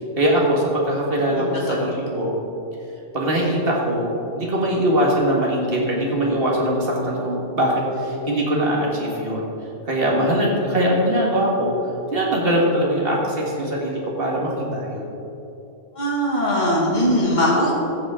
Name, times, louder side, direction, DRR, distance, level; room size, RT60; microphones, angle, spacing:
voice 1, 0.2-2.3 3.1-9.5 9.9-11.7 12.1-15.1, equal, 55° right, -2 dB, 2.0 m, -21 dB
voice 2, 1.3-1.8 16.0-17.7, equal, 40° left, -5 dB, 2.2 m, -20 dB
14.5 x 7.3 x 3.7 m, 3.0 s
omnidirectional pair, 1.2 m